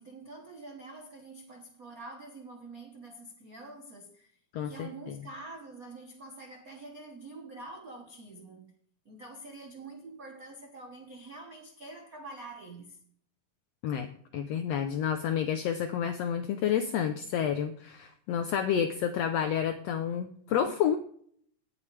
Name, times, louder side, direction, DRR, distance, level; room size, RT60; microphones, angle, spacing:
voice 1, 0.0-4.4 4.6-8.7 9.0-13.0, right 2 dB, 70° right, 0.8 m, -46 dB
voice 2, 4.5-5.2 13.8-21.0, left 8 dB, 75° left, 1.6 m, -30 dB
18.0 x 7.1 x 3.3 m
omnidirectional pair, 3.5 m